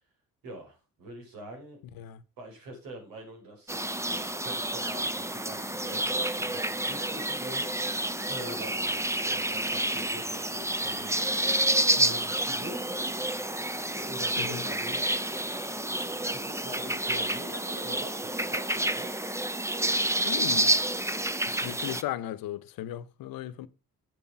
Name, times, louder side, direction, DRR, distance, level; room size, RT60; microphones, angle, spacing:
voice 1, 0.4-1.8 2.4-11.2 11.9-13.1 14.0-15.2 16.3-19.1, right 1 dB, 90° right, 5.3 m, -44 dB
sound 1, 3.7-22.0, right 1 dB, 10° right, 0.8 m, -29 dB
voice 2, 20.2-20.7 21.5-23.7, left 12 dB, 85° left, 0.9 m, -36 dB
7.9 x 7.4 x 5.9 m
cardioid pair, 75°, 34 cm